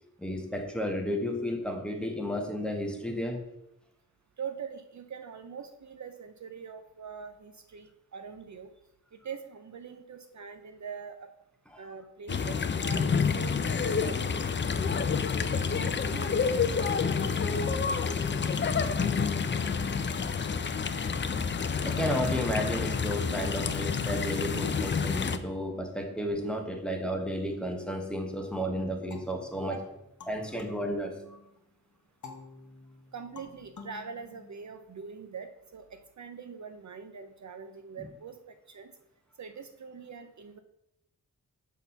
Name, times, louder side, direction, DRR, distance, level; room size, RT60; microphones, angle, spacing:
voice 1, 0.2-3.4 11.7-11.8 21.8-29.8 30.3-31.2 38.0-38.1, equal, 5° left, 2 dB, 1.0 m, -32 dB
voice 2, 4.4-8.7 9.1-11.3 11.8-15.1 15.5-18.0 29.7-29.8 33.1-38.9 39.4-40.6, right 6 dB, 55° right, 7 dB, 0.5 m, -44 dB
sound 1, 12.3-25.4, left 5 dB, 35° left, 0.4 m, -28 dB
sound 2, 29.1-31.6 32.2-35.0, left 4 dB, 55° left, 1.0 m, -50 dB
5.9 x 4.1 x 5.7 m, 0.84 s
wide cardioid pair, 115°, 35 cm